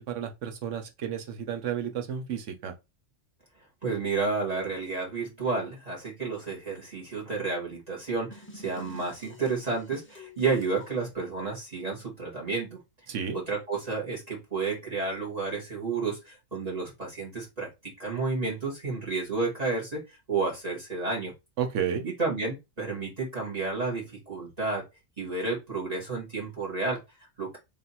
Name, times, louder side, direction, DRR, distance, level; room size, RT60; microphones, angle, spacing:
voice 1, 0.0-2.7 13.1-13.4 21.6-22.0, right 8 dB, 70° right, 1.1 m, -32 dB
voice 2, 3.8-12.8 13.3-17.7 18.0-21.3 22.2-24.8 25.2-27.6, right 4 dB, 30° right, 1.5 m, -31 dB
sound 1, 8.3-10.9, left 1 dB, 15° left, 0.4 m, -49 dB
3.3 x 2.7 x 4.1 m
omnidirectional pair, 1.3 m